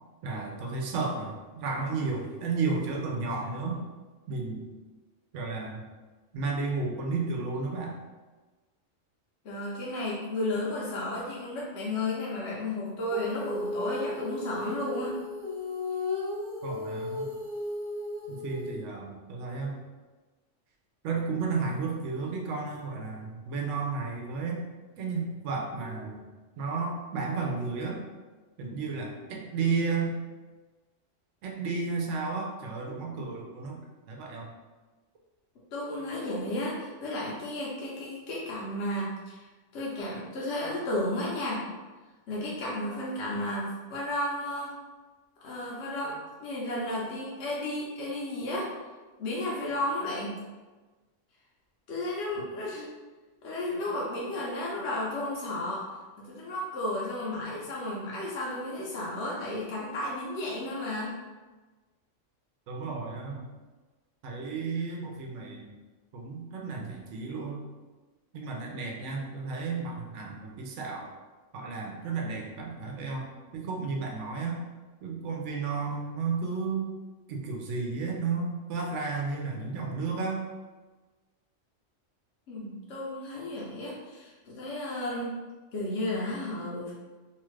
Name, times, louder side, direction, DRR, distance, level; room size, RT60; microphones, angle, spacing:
voice 1, 0.2-3.8 4.3-4.7 5.3-5.8 6.3-8.0 16.6-17.3 18.3-19.8 21.0-24.6 25.0-26.3 26.6-28.0 28.6-30.2 31.4-33.8 34.1-34.5 62.7-63.4 64.2-65.7 66.1-67.6 68.3-71.1 71.5-73.3 73.5-74.6 75.0-76.9 77.3-80.4, right 4 dB, 75° right, 0 dB, 0.9 m, -32 dB
voice 2, 9.4-15.1 35.7-41.7 42.3-44.7 45.4-48.7 49.2-50.4 51.9-52.9 53.4-55.8 56.3-61.2 82.5-85.4 85.7-86.9, left 1 dB, 65° left, -6 dB, 0.9 m, -33 dB
Female singing, 13.1-18.8, left 2 dB, 60° right, 0.3 m, -35 dB
2.7 x 2.4 x 3.1 m, 1.2 s
omnidirectional pair, 1.3 m